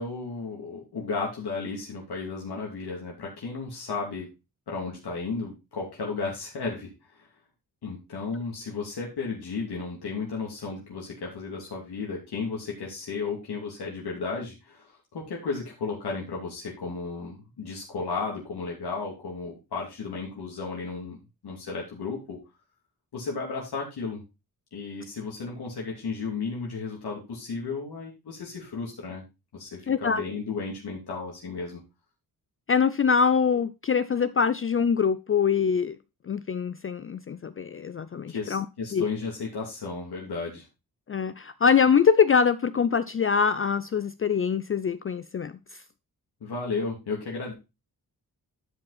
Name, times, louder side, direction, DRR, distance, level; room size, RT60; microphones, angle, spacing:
voice 1, 0.0-4.3 4.7-7.3 7.8-21.2 21.4-22.4 23.1-24.2 24.7-29.2 29.5-31.8 38.3-40.6 46.4-47.5, left 4 dB, 85° left, 2.7 m, -34 dB
voice 2, 29.9-30.2 32.7-36.0 36.2-38.7 38.9-39.0 41.1-45.8, left 6 dB, 35° left, 0.4 m, -24 dB
11.0 x 5.3 x 4.1 m
wide cardioid pair, 105°, 38 cm